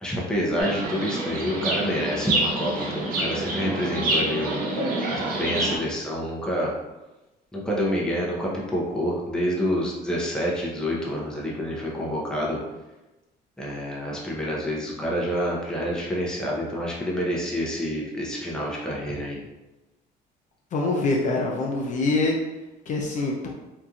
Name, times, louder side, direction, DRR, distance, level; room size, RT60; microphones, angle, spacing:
voice 1, 0.0-4.7 5.1-6.7 7.5-12.6 13.6-19.4, equal, 5° left, -4 dB, 0.6 m, -28 dB
Chirp tweet, 0.6-5.8, right 2 dB, 60° right, 0.7 m, -27 dB
voice 2, 20.7-22.4 22.9-23.5, left 3 dB, 45° left, -1 dB, 0.4 m, -24 dB
2.9 x 2.5 x 2.3 m, 1.0 s
cardioid pair, 110°, 17 cm